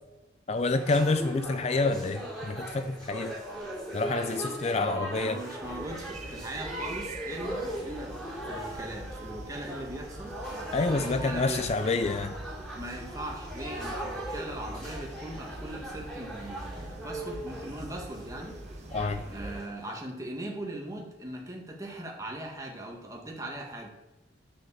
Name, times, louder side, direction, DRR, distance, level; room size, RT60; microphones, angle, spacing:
voice 1, 0.5-3.3 3.9-5.4 10.7-12.4 18.9-19.2, left 3 dB, 35° left, 10 dB, 0.4 m, -28 dB
sound 1, 0.5-19.9, right 1 dB, 5° left, 3.5 m, -40 dB
voice 2, 4.5-8.2 8.4-10.4 10.9-11.7 12.8-18.6 19.3-23.9, right 1 dB, 20° right, 0 dB, 2.0 m, -40 dB
sound 2, 5.6-19.6, right 2 dB, 40° right, 0.9 m, -43 dB
10.0 x 6.3 x 7.3 m, 1.1 s
head